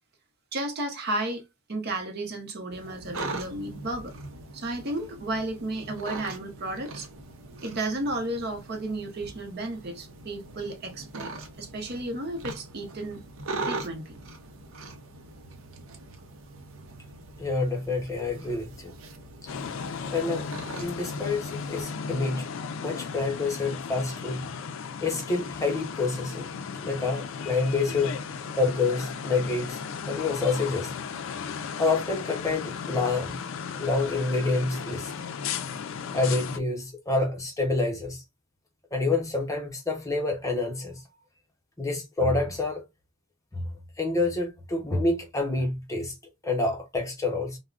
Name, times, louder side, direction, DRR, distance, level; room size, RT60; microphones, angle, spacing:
voice 1, 0.5-1.4 1.7-7.1 7.6-11.3 11.6-13.2 13.6-14.1, right 1 dB, 50° right, 0.6 m, -33 dB
sound 1, 2.7-21.8, right 2 dB, 90° right, 0.6 m, -41 dB
voice 2, 17.4-18.9 20.1-20.5 20.8-22.5 22.8-24.5 25.0-26.5 26.8-28.2 28.6-29.8 30.1-30.9 31.8-33.4 33.8-35.1 36.1-38.2 38.9-41.0 41.8-42.8 43.5-43.7 44.0-46.1 46.4-47.6, left 3 dB, 15° left, 0.7 m, -27 dB
sound 2, 19.5-36.6, left 6 dB, 65° left, 0.3 m, -35 dB
3.5 x 2.0 x 2.3 m
head